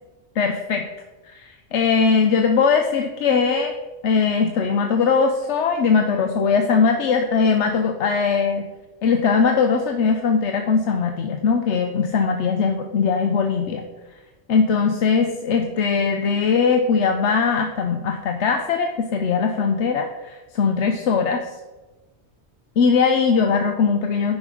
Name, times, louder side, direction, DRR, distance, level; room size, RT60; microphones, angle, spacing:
voice 1, 0.3-0.9 1.2-3.7 4.0-8.7 9.0-13.9 14.5-21.5 22.8-24.4, left 5 dB, 85° left, 5 dB, 1.0 m, -20 dB
10.0 x 5.2 x 4.8 m, 1.2 s
omnidirectional pair, 1.2 m